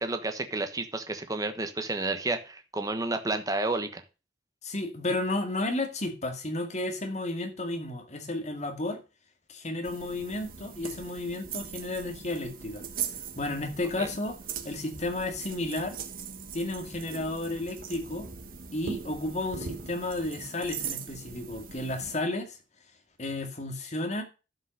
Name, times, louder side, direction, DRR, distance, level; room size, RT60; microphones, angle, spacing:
voice 1, 0.0-4.0 14.0-14.1, right 2 dB, 20° right, 1.2 m, -31 dB
voice 2, 4.6-9.0 9.5-12.8 13.4-14.4 14.6-16.0 16.5-18.3 18.7-22.6 23.2-24.2, left 2 dB, 40° left, 2.1 m, -32 dB
sound 1, 9.8-22.2, right 6 dB, 50° right, 1.2 m, -40 dB
11.5 x 5.4 x 6.5 m
head